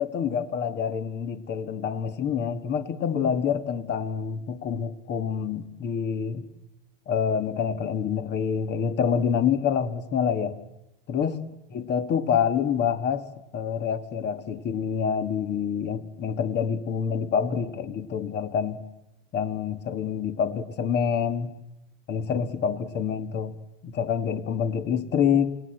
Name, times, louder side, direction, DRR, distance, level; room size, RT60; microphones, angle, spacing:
voice 1, 0.0-6.5 7.1-10.6 11.1-11.4 11.7-13.3 13.5-18.8 19.3-21.5 22.1-23.6 23.8-25.6, left 7 dB, 35° left, 1.7 m, -27 dB
28.5 x 19.0 x 7.8 m
hypercardioid pair, 115°, 30 cm